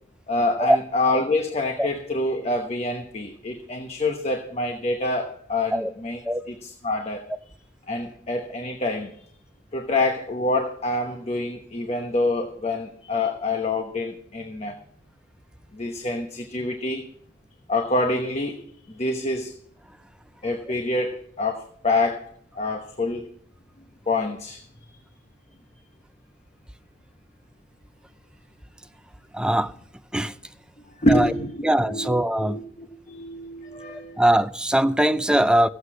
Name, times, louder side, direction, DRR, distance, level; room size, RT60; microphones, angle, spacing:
voice 1, 0.3-6.2 6.5-7.2 7.9-9.2 9.7-14.8 15.7-17.1 17.7-19.5 20.4-22.3 22.5-23.2 24.1-24.6 30.9-34.2, left 2 dB, 35° left, 1.0 m, -26 dB
voice 2, 29.3-29.7 30.1-30.3 31.1-31.3 31.6-32.6 33.9-35.7, right 1 dB, 5° right, 0.4 m, -21 dB
15.0 x 8.0 x 6.1 m
head